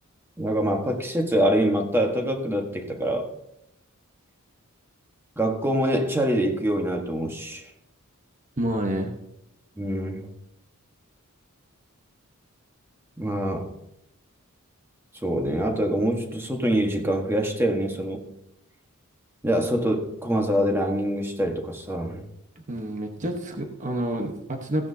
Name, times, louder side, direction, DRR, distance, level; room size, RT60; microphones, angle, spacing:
voice 1, 0.4-3.3 5.4-7.7 9.8-10.3 13.2-13.7 15.2-18.2 19.4-22.2, equal, 10° right, 3 dB, 1.4 m, -25 dB
voice 2, 8.6-9.1 22.7-24.9, right 1 dB, 35° right, 3 dB, 1.1 m, -28 dB
16.0 x 10.5 x 2.8 m, 0.80 s
head